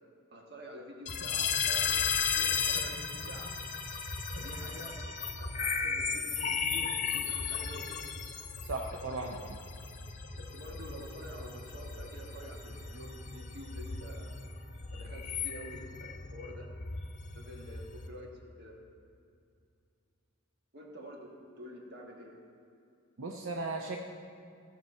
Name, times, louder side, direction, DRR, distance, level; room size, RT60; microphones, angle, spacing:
voice 1, 0.3-3.5 4.3-5.0 5.4-8.0 10.3-14.3 14.9-16.7 17.3-18.3 18.6-18.7 20.7-21.3 21.6-22.3, equal, 50° right, -1 dB, 1.5 m, -48 dB
sound 1, 1.1-18.1, left 6 dB, 35° left, 0.8 m, -35 dB
voice 2, 8.7-9.4 23.2-24.0, right 3 dB, 80° right, 1 dB, 0.6 m, -36 dB
15.5 x 5.9 x 4.3 m, 2.4 s
head